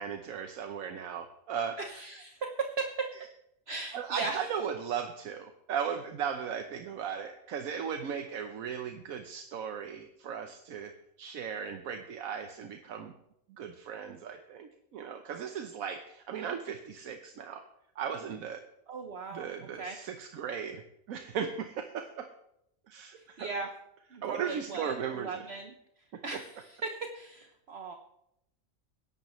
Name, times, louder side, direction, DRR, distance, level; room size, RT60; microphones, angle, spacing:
voice 1, 0.0-1.8 3.9-10.9 11.2-13.1 13.6-17.6 18.0-18.6 19.3-20.8 21.1-22.3 22.9-23.5 24.2-25.5, right 7 dB, 80° right, 6 dB, 1.2 m, -37 dB
voice 2, 1.8-2.4 3.7-4.4 18.9-19.5 19.8-20.0 23.4-23.7 24.1-25.7 26.2-27.9, right 3 dB, 55° right, 4 dB, 1.1 m, -39 dB
20.5 x 11.0 x 3.1 m, 0.80 s
omnidirectional pair, 1.4 m